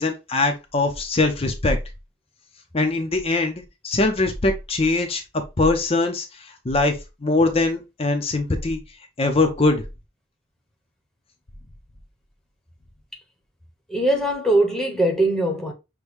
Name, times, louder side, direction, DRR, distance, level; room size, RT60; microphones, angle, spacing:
voice 1, 0.0-1.8 2.7-5.2 5.6-8.8 9.2-9.8, left 2 dB, 30° left, 0.7 m, -22 dB
voice 2, 13.9-15.7, right 1 dB, 5° left, 1.0 m, -21 dB
6.2 x 2.2 x 3.3 m
head